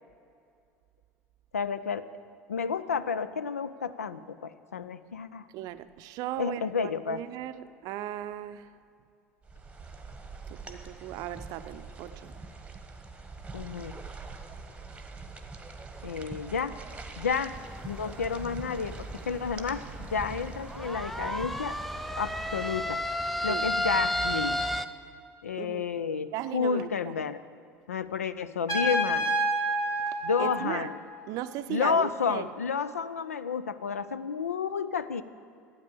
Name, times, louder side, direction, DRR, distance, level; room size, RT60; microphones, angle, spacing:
voice 1, 1.5-2.1 2.5-5.5 6.4-7.2 13.5-14.0 16.0-16.8 17.2-17.5 17.8-21.8 22.2-23.0 23.4-24.6 25.4-27.4 27.9-29.3 30.2-31.0 31.7-35.2, left 6 dB, 80° left, 14 dB, 0.4 m, -31 dB
voice 2, 5.5-8.7 10.5-12.3 23.5-23.7 25.6-25.8 26.3-26.9 30.0-30.9 31.3-32.5, right 12 dB, 50° right, 12 dB, 0.5 m, -37 dB
sound 1, 9.4-22.7, right 4 dB, 15° right, 1.1 m, -44 dB
sound 2, 17.5-24.9, equal, ahead, 0.5 m, -33 dB
Trumpet, 28.7-31.3, right 1 dB, 40° left, 2.6 m, -29 dB
12.5 x 8.9 x 6.7 m, 2.4 s
figure-of-eight pair, 70°, 8 cm